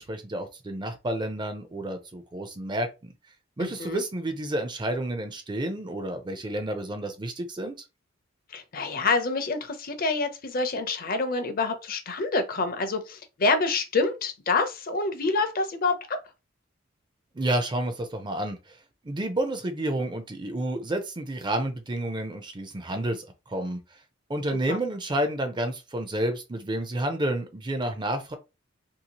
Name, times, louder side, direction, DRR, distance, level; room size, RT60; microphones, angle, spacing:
voice 1, 0.0-3.1 3.6-7.8 17.3-18.6 19.0-23.8 24.3-28.4, right 1 dB, 20° right, 0.5 m, -30 dB
voice 2, 3.6-4.0 8.5-16.2 24.7-24.8, left 3 dB, 45° left, 0.6 m, -27 dB
2.8 x 2.7 x 2.9 m
head